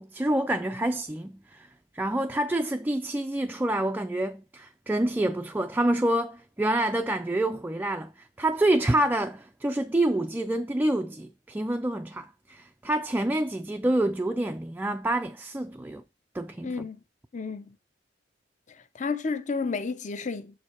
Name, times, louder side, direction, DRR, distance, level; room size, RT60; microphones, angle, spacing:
voice 1, 0.0-1.7 1.9-8.1 8.4-16.0 16.3-16.9, right 1 dB, 10° right, 0.3 m, -27 dB
voice 2, 16.6-17.0 17.3-17.7 18.9-20.6, left 4 dB, 40° left, 0.6 m, -31 dB
6.4 x 4.9 x 4.3 m
head